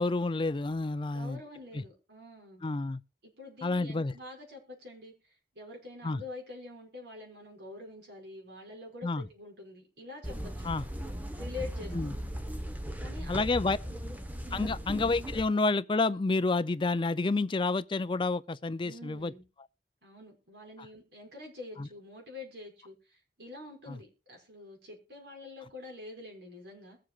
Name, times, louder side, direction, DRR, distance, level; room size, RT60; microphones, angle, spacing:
voice 1, 0.0-1.4 1.7-1.8 2.6-3.0 3.6-4.1 6.0-6.2 9.0-9.2 10.6-10.9 11.9-12.1 13.3-13.8 14.5-19.3 21.8-21.9 23.9-24.0, left 3 dB, 30° left, 0.4 m, -29 dB
voice 2, 1.1-2.6 3.4-10.7 11.4-12.1 13.0-13.5 13.8-14.0 14.4-14.7 18.8-19.4 20.0-27.0, left 2 dB, 70° right, 5.8 m, -46 dB
sound 1, 10.2-15.4, equal, 10° right, 1.0 m, -37 dB
21.5 x 7.7 x 2.4 m
head